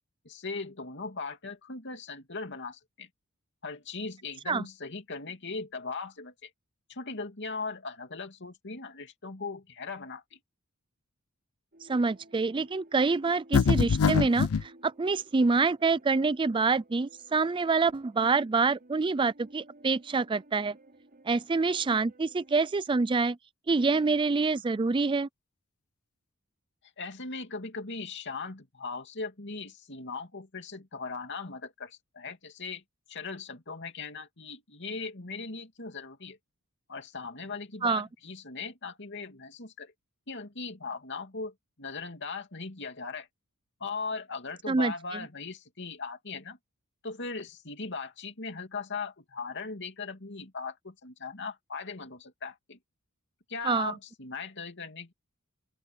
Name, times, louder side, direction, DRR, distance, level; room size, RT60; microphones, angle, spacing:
voice 1, 0.2-3.1 3.6-6.5 6.9-10.4 27.0-32.8 33.1-36.4 36.9-39.9 40.3-43.3 43.8-46.6 47.0-52.8 53.5-55.1, left 4 dB, 55° left, 2.7 m, -39 dB
sound 1, 11.7-22.7, right 1 dB, 45° right, 5.6 m, -56 dB
voice 2, 11.8-20.8 21.3-23.4 23.7-25.3 37.8-38.1 44.7-45.2 53.6-53.9, right 4 dB, 25° right, 0.4 m, -26 dB
sound 2, 13.5-14.6, left 6 dB, 80° left, 0.5 m, -23 dB
open air
head